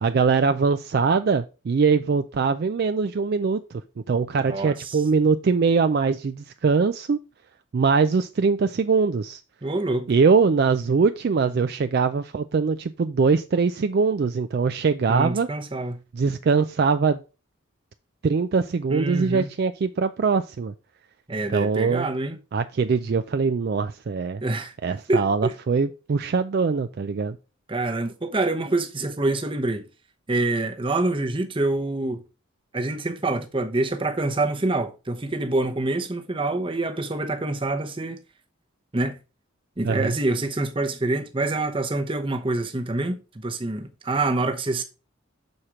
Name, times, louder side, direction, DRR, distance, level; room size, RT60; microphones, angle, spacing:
voice 1, 0.0-3.6 4.1-7.2 7.7-9.4 10.1-15.5 16.1-17.2 18.2-20.7 21.5-22.1 22.5-24.4 24.8-27.4 39.8-40.1, right 5 dB, 50° right, 0.3 m, -22 dB
voice 2, 4.4-5.0 9.6-10.1 15.1-16.0 18.9-19.5 21.3-22.4 24.4-24.7 25.1-25.5 27.7-29.8 30.3-32.2 32.7-38.2 38.9-39.2 39.8-44.8, right 2 dB, 25° right, 0.8 m, -26 dB
6.4 x 4.4 x 4.8 m
head